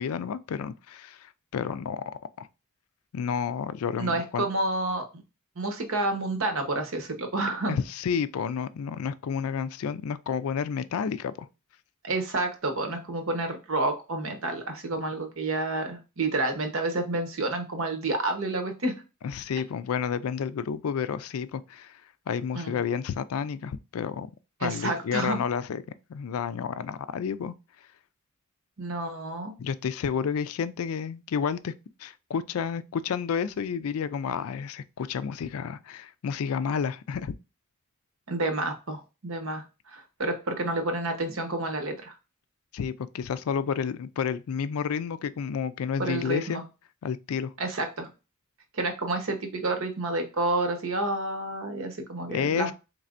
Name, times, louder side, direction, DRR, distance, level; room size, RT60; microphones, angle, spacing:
voice 1, 0.0-2.0 2.4-2.5 3.1-4.5 7.7-11.5 19.2-22.0 22.3-24.3 24.6-25.8 26.1-27.5 29.6-31.7 32.0-37.4 42.7-46.6 47.0-47.5 52.3-52.7, left 7 dB, 70° left, 0.4 m, -30 dB
voice 2, 4.0-5.2 5.6-7.8 12.0-18.9 22.5-22.8 24.6-25.4 28.8-29.5 38.3-42.1 46.0-46.6 47.6-48.1 48.7-52.7, right 2 dB, 65° right, 1.0 m, -29 dB
4.2 x 3.3 x 2.5 m
head